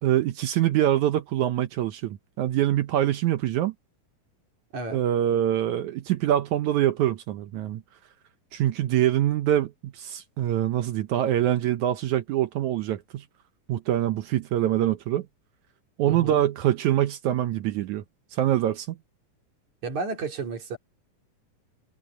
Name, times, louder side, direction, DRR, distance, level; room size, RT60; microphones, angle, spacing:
voice 1, 0.0-3.7 4.9-7.8 8.5-13.3 13.7-15.3 16.0-18.0 18.3-19.0, right 12 dB, 70° right, 1.9 m, -24 dB
voice 2, 16.0-16.4 19.8-20.8, right 4 dB, 55° right, 4.6 m, -32 dB
omnidirectional pair, 4.1 m